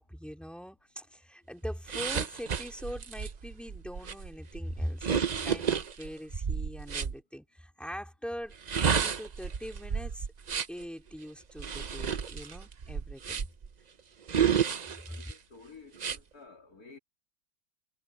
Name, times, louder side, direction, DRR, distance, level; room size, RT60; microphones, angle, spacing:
voice 1, 0.0-10.3 10.7-13.4, equal, ahead, 3.4 m, -42 dB
sound 1, 1.9-7.1 8.5-10.8 11.6-13.7 14.3-15.3 15.9-16.2, right 7 dB, 50° right, 0.5 m, -31 dB
voice 2, 15.1-17.0, left 4 dB, 70° left, 3.2 m, -52 dB
omnidirectional pair, 1.7 m